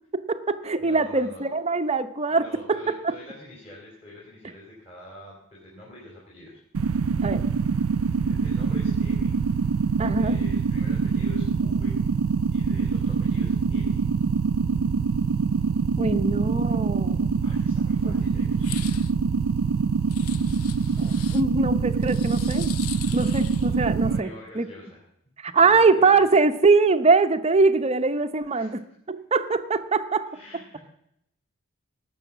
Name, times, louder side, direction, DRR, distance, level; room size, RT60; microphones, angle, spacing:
voice 1, 0.1-2.4 2.7-2.8 3.0-3.1 7.2-7.4 10.0-10.4 16.0-17.4 18.0-18.1 21.0-22.7 23.1-24.3 24.6-24.7 25.4-28.7 29.1-30.3, right 4 dB, 30° right, 9 dB, 0.7 m, -22 dB
voice 2, 0.8-1.5 2.3-6.6 8.2-9.4 10.1-12.0 12.5-14.0 17.4-18.9 24.0-25.0 25.6-26.3 28.4-29.0 30.3-30.8, left 1 dB, 30° left, -4 dB, 3.6 m, -45 dB
sound 1, 6.7-24.2, right 5 dB, 70° right, 0.4 m, -24 dB
sound 2, 18.6-19.1 20.1-21.4 22.0-23.8, left 11 dB, 85° left, 0.7 m, -40 dB
18.0 x 7.0 x 7.3 m, 0.78 s
head